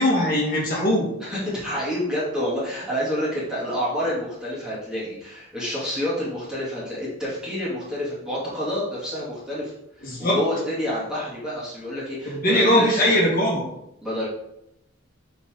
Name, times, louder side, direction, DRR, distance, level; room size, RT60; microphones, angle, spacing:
voice 1, 0.0-1.1 10.0-10.4 12.3-13.7, equal, 45° left, -4 dB, 2.0 m, -20 dB
voice 2, 1.2-9.7 10.0-13.1 14.0-14.3, equal, 5° right, -8 dB, 2.4 m, -28 dB
8.1 x 4.1 x 3.8 m, 0.79 s
head